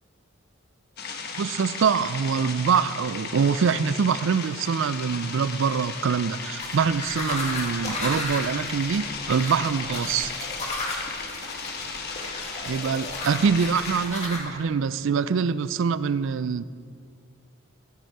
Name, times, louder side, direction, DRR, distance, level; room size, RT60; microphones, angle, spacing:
sound 1, 1.0-14.1, left 4 dB, 50° left, 1.1 m, -35 dB
voice 1, 1.4-10.4 12.7-16.6, right 6 dB, 60° right, 16 dB, 0.4 m, -24 dB
sound 2, 6.6-14.4, left 2 dB, 35° left, 1.9 m, -34 dB
14.0 x 9.1 x 4.7 m, 2.1 s
head